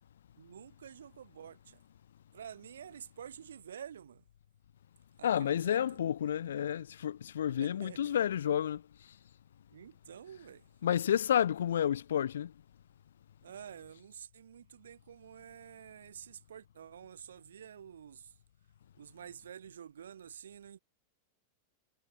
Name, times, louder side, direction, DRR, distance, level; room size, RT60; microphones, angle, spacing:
voice 1, 0.4-1.8 2.3-4.2 5.2-6.0 7.6-8.2 9.7-10.6 13.4-18.3 18.9-20.8, right 8 dB, 65° right, 5.2 m, -49 dB
voice 2, 5.2-8.8 10.8-12.5, left 9 dB, 65° left, 0.4 m, -30 dB
figure-of-eight pair, 90°, 0 cm